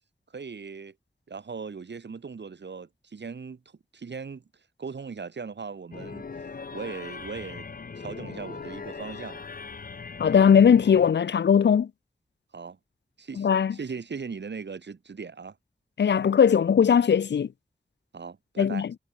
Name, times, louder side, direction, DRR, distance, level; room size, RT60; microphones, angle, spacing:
voice 1, 0.3-0.9 1.3-3.6 3.9-4.4 4.8-6.3 6.7-7.7 8.0-9.4 12.5-12.8 13.2-15.6 18.1-18.9, right 5 dB, 85° right, 1.7 m, -38 dB
sound 1, 5.9-11.1, left 5 dB, 55° left, 0.8 m, -40 dB
voice 2, 10.2-11.9 13.4-13.8 16.0-17.5 18.6-18.9, left 7 dB, 85° left, 0.5 m, -19 dB
wide cardioid pair, 65°, 18 cm